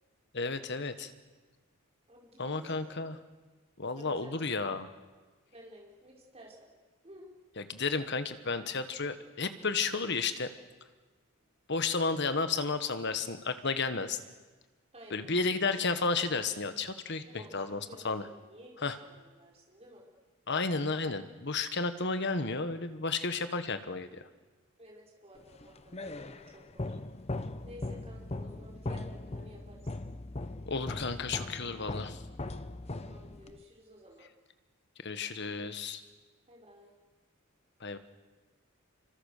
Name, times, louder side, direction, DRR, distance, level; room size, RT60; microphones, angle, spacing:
voice 1, 0.3-1.1 2.4-3.2 3.8-4.9 7.6-10.5 11.7-14.2 15.1-18.2 18.8-19.0 20.5-24.2 30.7-32.2 35.0-36.0 37.8-38.0, left 4 dB, 50° left, 10 dB, 1.4 m, -32 dB
voice 2, 2.1-3.1 4.0-4.4 5.5-6.7 7.0-7.3 14.9-15.3 17.3-20.1 24.8-26.9 27.6-29.8 32.9-34.3 36.5-36.9, equal, 30° right, -2 dB, 5.6 m, -53 dB
sound 1, 25.5-33.6, left 2 dB, 30° left, 0.8 m, -39 dB
27.0 x 25.0 x 6.7 m, 1.3 s
head